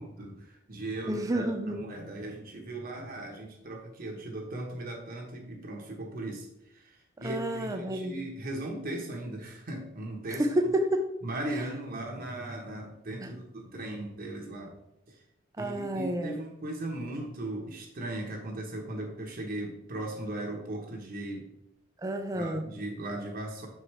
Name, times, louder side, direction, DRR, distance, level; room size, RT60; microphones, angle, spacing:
voice 1, 0.0-10.4 11.2-14.7 15.1-15.2 15.6-21.5 22.3-23.7, right 1 dB, 45° right, 0 dB, 1.0 m, -38 dB
voice 2, 1.1-1.8 7.2-8.2 10.3-11.1 13.2-13.3 15.6-16.4 22.0-22.6, right 1 dB, 15° right, 5 dB, 0.4 m, -30 dB
6.4 x 4.7 x 3.2 m, 0.83 s
head